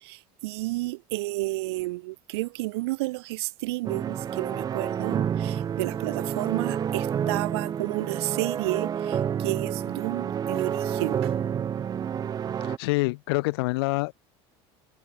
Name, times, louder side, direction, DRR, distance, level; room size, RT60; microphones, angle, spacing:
voice 1, 0.0-11.3, right 21 dB, 90° right, 3.0 m, -31 dB
sound 1, 3.8-12.8, right 8 dB, 30° right, 2.1 m, -29 dB
voice 2, 12.6-14.1, left 24 dB, 85° left, 1.1 m, -26 dB
supercardioid pair, 135°, 13 cm